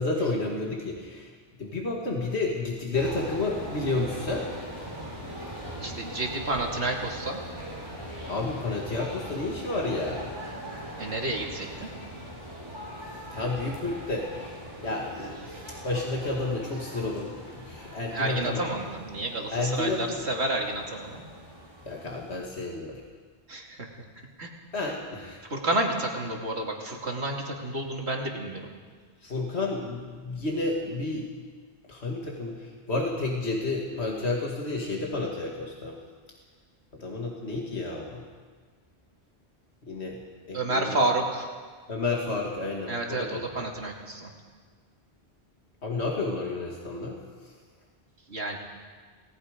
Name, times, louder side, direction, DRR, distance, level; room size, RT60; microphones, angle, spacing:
voice 1, 0.0-1.3 1.6-4.5 8.3-10.3 13.3-14.5 14.8-18.6 19.5-20.2 21.9-23.0 24.7-25.4 29.2-31.3 31.9-36.0 37.0-38.2 39.9-40.2 40.5-41.0 41.9-43.4 45.8-47.5, left 2 dB, 85° left, -1 dB, 2.4 m, -31 dB
sound 1, 2.9-22.4, equal, 25° right, 5.1 m, -41 dB
voice 2, 5.8-7.4 11.0-11.9 18.1-21.2 23.5-23.9 24.4-24.5 25.5-28.7 40.5-41.5 42.9-44.3 48.3-48.6, right 2 dB, 85° right, 0 dB, 2.9 m, -30 dB
28.0 x 18.5 x 5.1 m, 1.5 s
omnidirectional pair, 1.1 m